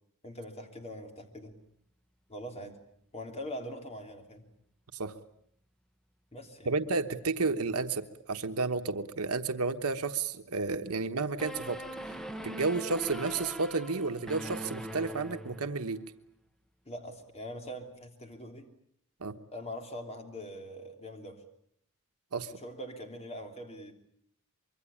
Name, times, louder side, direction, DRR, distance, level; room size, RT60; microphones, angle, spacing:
voice 1, 0.2-1.5 2.3-2.8 3.1-4.5 6.3-6.7 16.8-18.7 19.5-21.4 22.5-23.9, equal, 30° left, 4 dB, 3.2 m, -42 dB
voice 2, 6.7-12.2 12.4-16.0 19.2-19.3 22.3-22.5, right 4 dB, 85° right, 7 dB, 1.1 m, -32 dB
sound 1, 11.4-16.0, right 1 dB, ahead, 1.3 m, -41 dB
25.0 x 23.0 x 8.5 m, 0.70 s
head